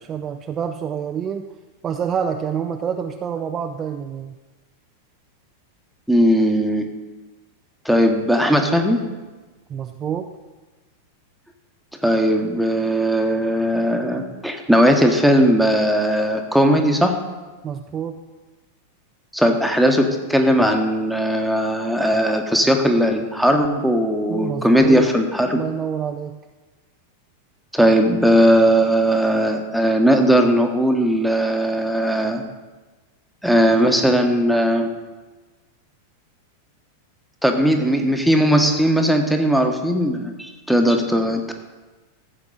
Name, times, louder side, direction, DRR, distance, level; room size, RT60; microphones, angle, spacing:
voice 1, 0.1-1.4 1.8-4.3 9.7-10.3 17.6-18.2 24.3-26.4, right 8 dB, 25° right, 5 dB, 0.5 m, -27 dB
voice 2, 6.1-6.9 7.8-9.0 12.0-17.2 19.3-25.6 27.7-32.4 33.4-34.9 37.4-41.5, equal, ahead, 3 dB, 1.3 m, -18 dB
15.0 x 7.9 x 4.1 m, 1.3 s
figure-of-eight pair, 90°, 0 cm